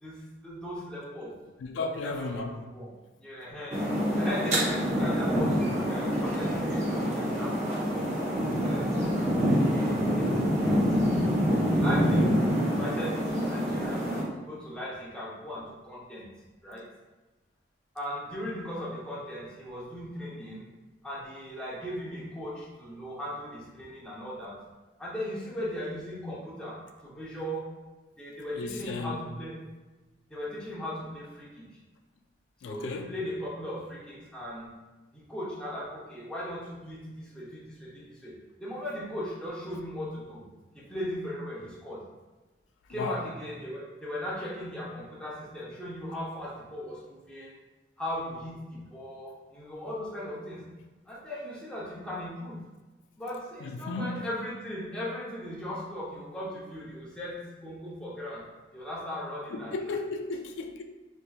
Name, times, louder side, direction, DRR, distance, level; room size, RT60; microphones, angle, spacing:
voice 1, 0.0-1.4 2.0-2.9 3.2-8.1 8.6-11.1 11.8-12.3 12.6-14.1 14.4-16.3 16.6-16.9 17.9-20.6 21.0-24.6 25.0-27.7 28.2-29.6 30.3-31.8 32.6-34.7 35.1-38.3 38.6-40.4 40.7-42.0 42.9-47.6 48.0-50.6 51.1-52.6 53.2-59.9, equal, 5° left, 0.7 m, -38 dB
voice 2, 1.6-2.6 12.2-12.3 28.5-29.2 32.6-33.1 42.9-43.2 53.6-54.3 59.5-60.8, left 3 dB, 90° left, 0.3 m, -34 dB
sound 1, 3.7-14.2, equal, 40° right, 0.8 m, -26 dB
4.2 x 2.6 x 2.3 m
head